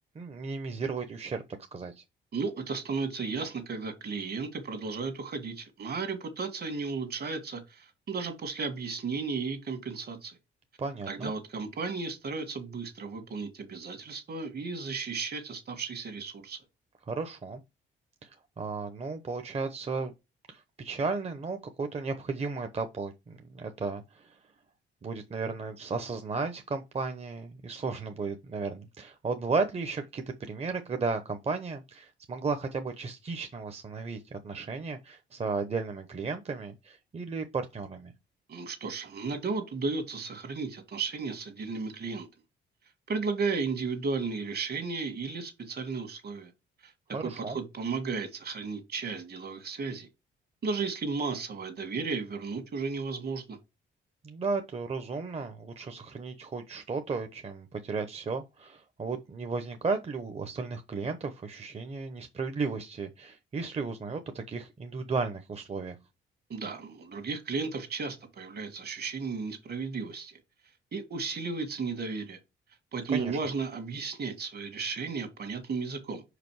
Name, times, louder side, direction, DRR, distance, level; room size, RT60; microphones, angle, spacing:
voice 1, 0.1-1.4 1.7-2.0 10.8-11.3 17.1-17.6 18.2-20.1 20.5-24.4 25.0-38.1 47.1-47.6 54.2-65.9 73.1-73.4, right 4 dB, 30° right, 0.9 m, -34 dB
voice 2, 2.3-10.4 11.1-16.6 38.5-42.3 43.1-46.5 46.8-46.9 47.2-50.1 50.6-53.6 66.5-70.4 70.9-72.4 72.9-76.2, right 4 dB, 50° right, 1.9 m, -34 dB
5.2 x 5.1 x 4.7 m
cardioid pair, 90°, 20 cm